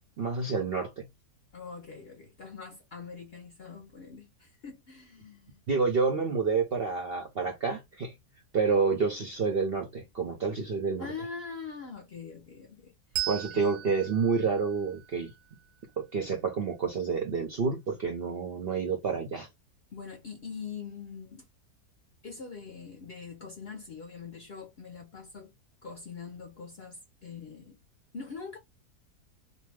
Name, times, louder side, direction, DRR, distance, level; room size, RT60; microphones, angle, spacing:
voice 1, 0.2-1.0 5.7-8.1 8.5-11.1 13.3-15.3 16.0-19.5, right 5 dB, 60° right, 0.6 m, -29 dB
voice 2, 1.5-5.6 11.0-12.9 13.2-13.7 19.9-21.5 22.2-25.5 25.8-27.8 28.1-28.6, left 5 dB, 60° left, 0.6 m, -43 dB
Bell, 13.1-16.2, right 14 dB, 90° right, 1.2 m, -39 dB
2.7 x 2.1 x 3.2 m
omnidirectional pair, 1.7 m